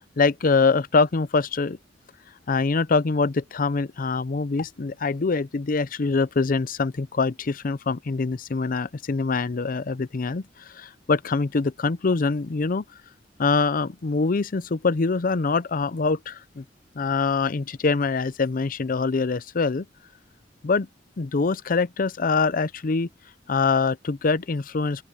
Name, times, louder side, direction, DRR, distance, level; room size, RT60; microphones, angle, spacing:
voice 1, 0.2-1.8 2.5-12.8 13.4-16.6 16.9-19.9 20.6-20.9 21.2-23.1 23.5-25.0, left 4 dB, 50° left, 0.6 m, -24 dB
open air
head